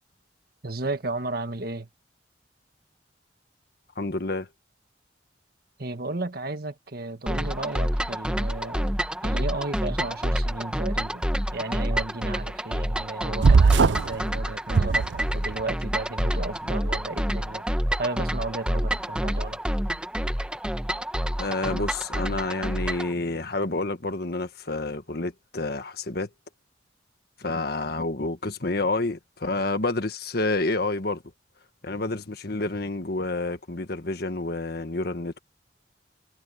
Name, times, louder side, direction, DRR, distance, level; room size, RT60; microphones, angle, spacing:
voice 1, 0.6-1.9 5.8-9.0 9.2-11.2 11.5-15.1 15.3-17.6 18.0-19.6, right 2 dB, 55° right, 1.6 m, -33 dB
voice 2, 4.0-4.5 21.4-26.3 27.4-31.2 31.8-35.4, left 2 dB, 55° left, 1.6 m, -29 dB
sound 1, 7.3-23.1, equal, 5° right, 1.3 m, -28 dB
sound 2, 13.4-14.2 14.7-15.6, right 4 dB, 75° right, 0.5 m, -19 dB
head